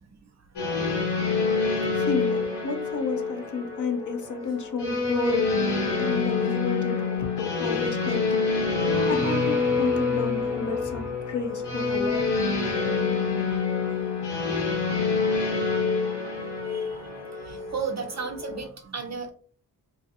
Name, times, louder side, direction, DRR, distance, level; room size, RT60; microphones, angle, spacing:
sound 1, 0.6-18.6, left 4 dB, 85° left, 0.9 m, -27 dB
voice 1, 1.9-5.6 6.0-8.4 9.1-12.3, left 3 dB, 50° left, 6 dB, 0.6 m, -31 dB
voice 2, 16.6-17.1 17.4-19.3, right 5 dB, 45° right, 5 dB, 0.4 m, -34 dB
2.4 x 2.4 x 2.7 m, 0.43 s
wide cardioid pair, 75°, 39 cm